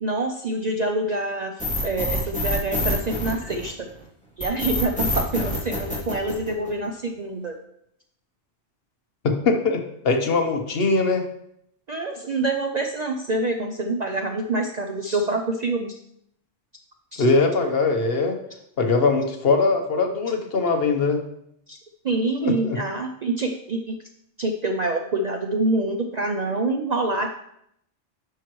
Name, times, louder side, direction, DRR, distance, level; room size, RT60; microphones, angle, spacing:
voice 1, 0.0-3.9 4.4-7.6 11.9-16.0 17.1-17.3 21.7-21.8 22.0-24.0 24.4-27.3, right 2 dB, 50° right, 4 dB, 0.5 m, -26 dB
sound 1, 1.6-3.9 4.4-6.8, left 1 dB, 5° left, 2.6 m, -26 dB
voice 2, 9.2-11.3 17.2-18.4 18.8-21.2 22.4-22.8, left 3 dB, 55° left, 4 dB, 1.1 m, -21 dB
9.3 x 5.7 x 3.1 m, 0.74 s
omnidirectional pair, 1.2 m